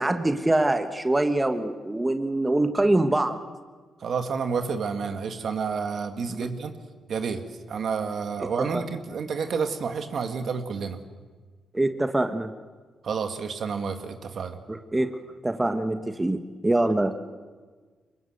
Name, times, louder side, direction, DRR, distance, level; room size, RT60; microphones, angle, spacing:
voice 1, 0.0-3.4 6.4-6.5 8.4-8.5 8.7-8.8 11.7-12.5 14.7-15.1 15.4-17.1, right 2 dB, 20° right, 7 dB, 1.4 m, -24 dB
voice 2, 4.0-6.7 7.1-7.4 7.7-11.0 13.0-14.6, right 5 dB, 65° right, 6 dB, 2.0 m, -29 dB
23.5 x 21.0 x 8.0 m, 1.4 s
cardioid pair, 65°, 0 cm